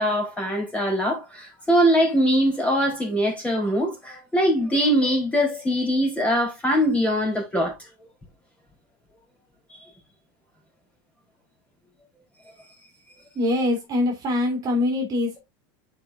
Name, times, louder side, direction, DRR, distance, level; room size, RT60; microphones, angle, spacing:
voice 1, 0.0-7.8, equal, 10° left, 3.6 m, -22 dB
voice 2, 13.3-15.4, left 2 dB, 35° right, 2.7 m, -23 dB
11.0 x 4.9 x 2.5 m
supercardioid pair, 130°, 11 cm